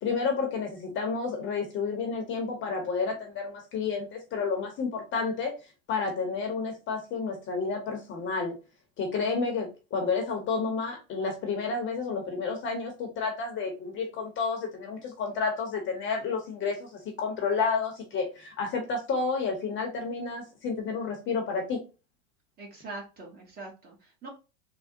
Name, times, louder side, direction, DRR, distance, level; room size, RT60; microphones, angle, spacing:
voice 1, 0.0-5.5 5.9-8.6 9.0-21.8, left 4 dB, 30° left, 0.8 m, -30 dB
voice 2, 22.6-24.3, right 3 dB, 25° right, 1.0 m, -43 dB
3.4 x 2.1 x 2.6 m
hypercardioid pair, 120°, 38 cm